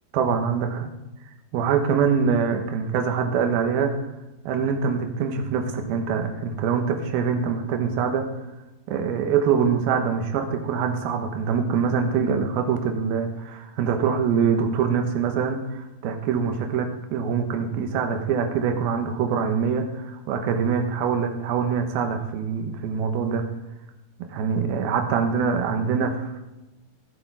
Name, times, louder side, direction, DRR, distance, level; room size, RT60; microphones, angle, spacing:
voice 1, 0.1-0.9 1.5-3.9 4.5-8.3 8.9-23.5 24.2-26.4, right 6 dB, 70° right, 5 dB, 2.8 m, -24 dB
15.5 x 7.8 x 4.7 m, 0.99 s
omnidirectional pair, 5.0 m